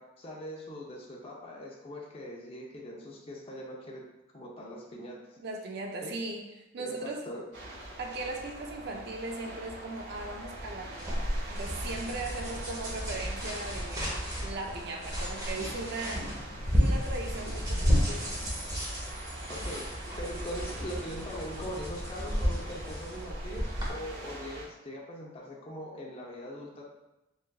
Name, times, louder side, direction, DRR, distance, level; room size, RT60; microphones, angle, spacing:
voice 1, 0.0-4.0 4.3-5.4 6.0-6.1 6.8-7.4 19.2-26.9, equal, 30° left, -2 dB, 0.6 m, -41 dB
voice 2, 5.4-6.5 6.7-7.2 8.0-14.1 14.4-16.3 16.7-18.4, right 2 dB, 60° right, 2 dB, 0.5 m, -38 dB
sound 1, 7.5-24.7, right 1 dB, 75° right, 1.3 m, -44 dB
sound 2, 11.0-23.9, equal, 20° right, 0.9 m, -32 dB
7.0 x 2.5 x 2.3 m, 0.96 s
head